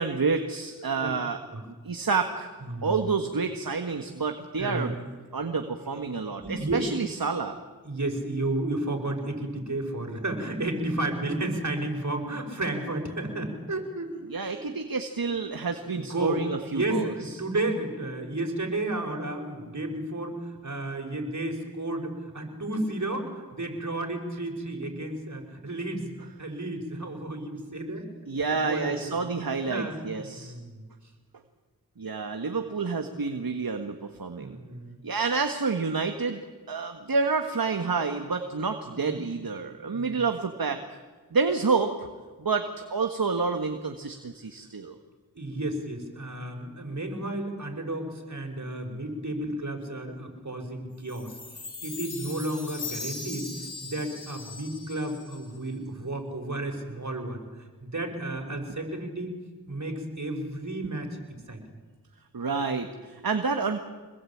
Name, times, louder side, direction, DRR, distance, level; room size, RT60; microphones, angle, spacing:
voice 1, 0.0-1.4 1.8-2.5 2.8-4.9 5.3-7.6 14.3-17.4 28.3-30.5 32.0-34.6 35.0-36.4 36.7-41.0 41.3-42.1 42.4-44.9 62.3-63.8, right 4 dB, 65° right, 6 dB, 1.8 m, -29 dB
voice 2, 2.6-3.1 4.6-5.0 5.9-6.0 6.4-6.9 7.8-14.1 14.4-14.7 15.3-15.5 15.9-16.4 16.7-26.1 26.4-28.0 28.4-30.8 34.3-35.0 38.9-39.3 39.9-40.2 45.3-53.5 53.8-57.4 57.8-59.3 59.7-61.1 61.5-61.6, right 1 dB, 50° right, 4 dB, 5.9 m, -32 dB
Chime, 51.1-55.6, left 4 dB, 90° left, 4.0 m, -40 dB
26.0 x 21.0 x 8.8 m, 1.4 s
cardioid pair, 40°, 38 cm